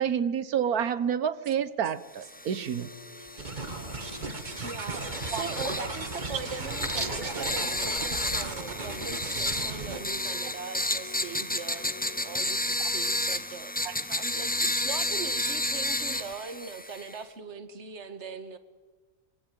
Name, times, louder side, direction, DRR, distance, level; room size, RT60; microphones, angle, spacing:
voice 1, 0.0-2.9 5.3-5.5 13.8-13.9, right 8 dB, 80° right, 15 dB, 1.6 m, -28 dB
sound 1, 2.3-17.2, left 1 dB, 5° left, 0.8 m, -32 dB
sound 2, 2.8-12.4, left 4 dB, 55° left, 7.4 m, -50 dB
sound 3, 3.4-10.0, right 3 dB, 30° right, 1.8 m, -36 dB
voice 2, 4.6-11.9 12.2-18.6, right 5 dB, 50° right, 10 dB, 1.9 m, -40 dB
25.5 x 23.5 x 9.4 m, 1.2 s
omnidirectional pair, 1.6 m